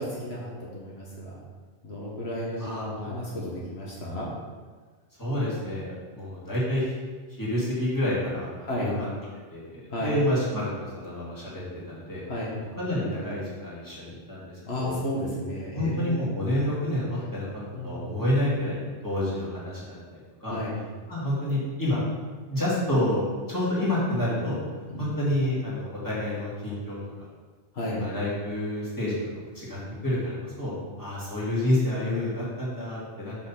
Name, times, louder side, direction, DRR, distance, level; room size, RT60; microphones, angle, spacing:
voice 1, 0.0-1.4 1.8-4.3 8.6-8.9 9.9-10.1 12.3-12.5 14.6-16.4 17.7-18.2 20.5-20.8 24.9-25.1 27.7-28.0 29.8-29.9, left 1 dB, 70° left, -5 dB, 1.6 m, -33 dB
voice 2, 2.6-3.2 5.2-6.9 7.4-9.1 9.5-12.2 12.8-14.9 15.7-17.5 17.8-20.0 20.4-20.6 21.1-22.0 22.5-24.6 25.0-27.3 28.0-29.2 29.5-30.7 31.0-33.4, left 1 dB, 20° left, -8 dB, 2.2 m, -29 dB
6.0 x 4.3 x 5.8 m, 1.4 s
omnidirectional pair, 1.1 m